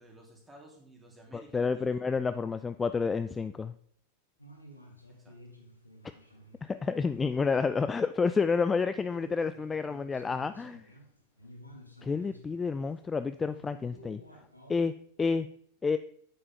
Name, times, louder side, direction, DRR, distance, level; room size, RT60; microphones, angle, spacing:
voice 1, 0.0-2.0 5.2-5.3, right 1 dB, 10° right, 0 dB, 3.0 m, -54 dB
voice 2, 1.3-3.7 6.7-10.8 12.0-14.2 14.7-14.9 15.2-15.5 15.8-16.0, left 5 dB, 15° left, 11 dB, 0.3 m, -29 dB
sound 1, 4.4-7.9 8.2-8.3 8.9-14.9, equal, 90° left, 1.6 m, -53 dB
9.4 x 7.7 x 3.6 m, 0.62 s
figure-of-eight pair, 90°, 0 cm